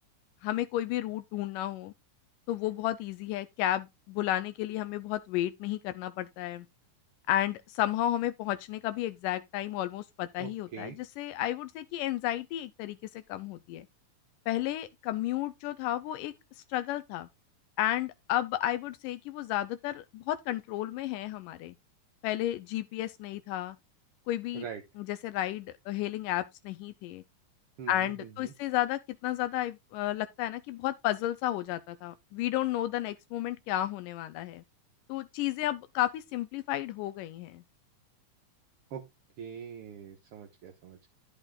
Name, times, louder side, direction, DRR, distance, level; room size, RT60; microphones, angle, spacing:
voice 1, 0.4-1.9 2.5-6.7 7.3-13.9 14.5-16.3 16.7-17.3 17.8-21.7 22.2-23.8 24.3-24.7 25.0-27.2 27.9-34.6 35.1-37.6, left 13 dB, 85° left, 2.2 m, -32 dB
voice 2, 10.4-11.0 24.5-24.8 27.8-28.5 38.9-39.0 39.4-41.1, right 7 dB, 60° right, 1.6 m, -43 dB
11.0 x 6.2 x 3.7 m
omnidirectional pair, 3.8 m